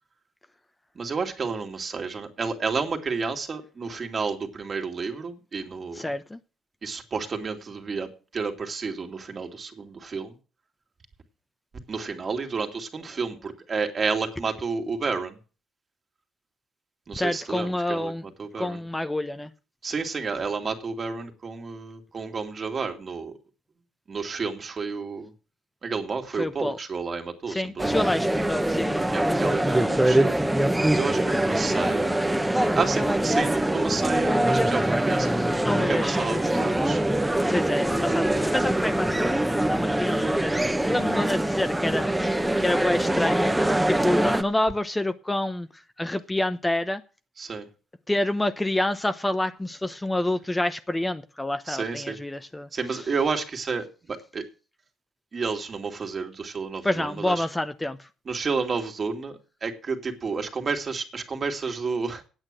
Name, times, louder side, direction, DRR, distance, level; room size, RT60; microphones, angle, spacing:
voice 1, 0.9-6.1 6.8-10.3 11.9-15.4 17.1-18.8 19.8-23.3 24.1-25.3 25.8-28.1 29.1-30.4 30.9-32.2 32.7-35.5 35.9-37.0 42.6-42.7 47.4-47.7 51.7-52.2 52.7-54.4 55.3-57.5 58.3-62.2, right 4 dB, 45° right, 4 dB, 2.4 m, -31 dB
voice 2, 5.9-6.4 17.2-18.2 18.6-19.5 26.4-26.8 27.5-29.6 31.3-31.4 35.2-36.5 37.5-40.6 40.9-43.6 43.9-45.7 46.0-47.0 48.1-52.7 56.8-58.1, left 1 dB, 15° left, 10 dB, 0.8 m, -28 dB
sound 1, 27.8-44.4, right 1 dB, 5° right, 1.1 m, -23 dB
9.1 x 8.2 x 7.6 m, 0.35 s
supercardioid pair, 70°, 0 cm